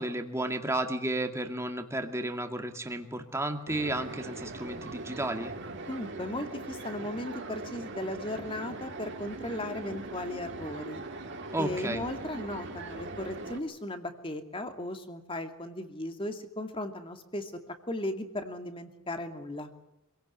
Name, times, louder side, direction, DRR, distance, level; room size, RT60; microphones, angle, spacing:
voice 1, 0.0-5.5 11.5-12.0, right 1 dB, 10° right, 6 dB, 2.2 m, -32 dB
sound 1, 3.7-13.6, right 2 dB, 55° right, 3.1 m, -41 dB
voice 2, 5.7-11.0 11.6-17.5 17.9-19.7, left 1 dB, 25° left, 7 dB, 2.4 m, -36 dB
26.5 x 17.5 x 9.6 m, 0.89 s
head